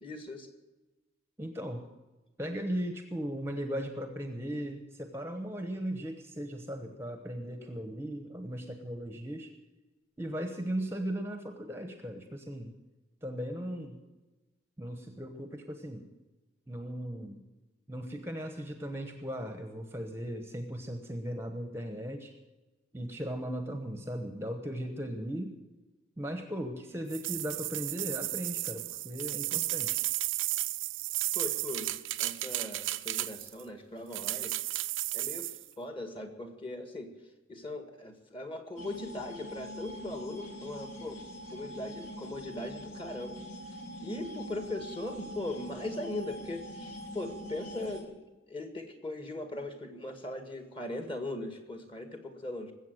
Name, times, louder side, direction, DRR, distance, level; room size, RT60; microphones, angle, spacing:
voice 1, 0.0-0.5 31.4-34.6 35.1-37.1 37.5-41.2 41.5-48.1 48.5-52.7, left 2 dB, 25° left, 6 dB, 1.8 m, -39 dB
voice 2, 1.4-1.9 2.4-9.5 10.2-12.7 13.2-14.0 14.8-16.0 16.7-17.4 17.9-22.3 22.9-25.6 26.2-30.0, equal, 10° right, 6 dB, 1.0 m, -37 dB
sound 1, 27.1-33.6 34.1-35.6, right 17 dB, 70° right, 0.5 m, -33 dB
sound 2, 38.8-48.0, equal, 85° left, 2.8 m, -44 dB
20.5 x 8.2 x 7.9 m, 1.1 s
head